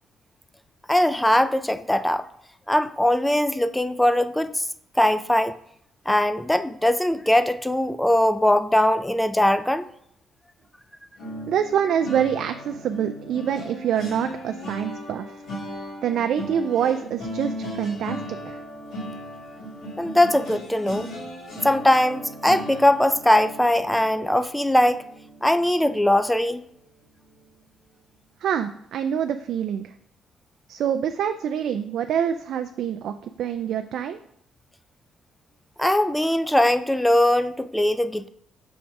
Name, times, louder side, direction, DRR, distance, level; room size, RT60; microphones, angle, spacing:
voice 1, 0.9-2.2 2.7-4.6 5.0-5.6 6.1-9.8 20.0-21.1 21.6-25.0 25.4-26.6 35.8-38.3, left 1 dB, 5° left, 12 dB, 0.4 m, -20 dB
sound 1, 11.2-26.3 26.7-27.0 27.3-27.5, equal, 75° left, 2.4 m, -37 dB
voice 2, 11.5-15.3 16.0-18.6 28.4-29.9 30.7-34.2, right 9 dB, 75° right, 8 dB, 0.3 m, -26 dB
5.9 x 3.5 x 5.2 m, 0.70 s
cardioid pair, 90°, 0 cm